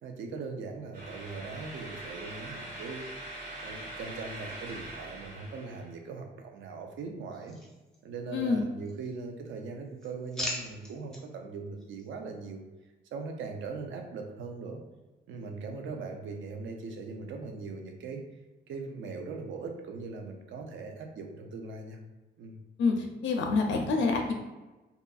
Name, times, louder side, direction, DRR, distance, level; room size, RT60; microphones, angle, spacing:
voice 1, 0.0-3.1 3.6-7.6 8.0-12.6 13.1-14.8 15.3-18.2 18.7-22.0 22.4-22.6, right 4 dB, 75° right, 3 dB, 0.5 m, -40 dB
sound 1, 0.9-5.9, right 1 dB, 50° right, 1.1 m, -42 dB
sound 2, 7.3-8.4 8.8-9.5 9.8-11.2 11.8-12.1, left 1 dB, 5° left, 0.5 m, -41 dB
voice 2, 8.3-8.6 22.8-24.3, left 4 dB, 70° left, 3 dB, 0.4 m, -27 dB
2.7 x 2.4 x 2.3 m, 1.1 s
cardioid pair, 120°, 20 cm